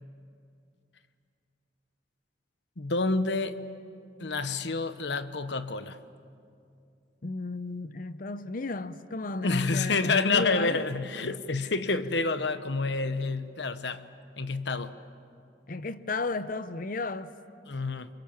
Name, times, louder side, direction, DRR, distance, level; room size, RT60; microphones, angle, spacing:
voice 1, 2.8-3.6 4.2-6.0 9.4-14.1 14.4-14.9 17.7-18.1, left 3 dB, 75° left, 1.1 m, -28 dB
voice 2, 7.2-10.8 15.7-17.3, left 3 dB, 50° left, 0.7 m, -33 dB
27.5 x 24.0 x 7.3 m
head